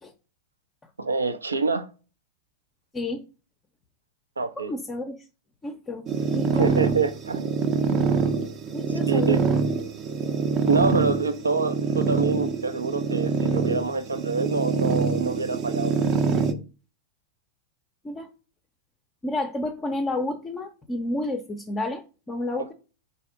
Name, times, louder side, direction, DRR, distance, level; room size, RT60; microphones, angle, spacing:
voice 1, 1.0-1.9 4.4-4.7 6.5-7.5 9.1-9.4 10.7-16.1, right 4 dB, 75° right, 0.5 m, -26 dB
voice 2, 2.9-3.2 4.6-5.2 5.6-6.8 8.7-9.5 18.0-18.3 19.2-22.7, left 2 dB, 15° left, 0.6 m, -30 dB
sound 1, 6.1-16.5, right 5 dB, 35° right, 0.6 m, -25 dB
4.1 x 2.8 x 4.5 m
figure-of-eight pair, 90°, 0 cm